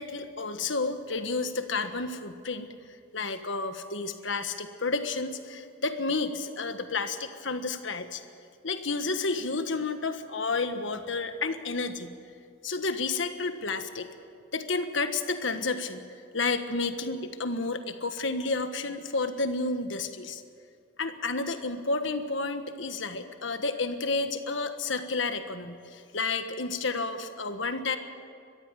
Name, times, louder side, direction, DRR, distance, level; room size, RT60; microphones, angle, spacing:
voice 1, 0.0-2.7 3.1-8.2 8.6-12.1 12.6-14.1 14.5-16.0 16.3-20.4 21.0-28.0, left 3 dB, 70° left, 8 dB, 1.4 m, -31 dB
22.5 x 14.0 x 9.3 m, 2.2 s
head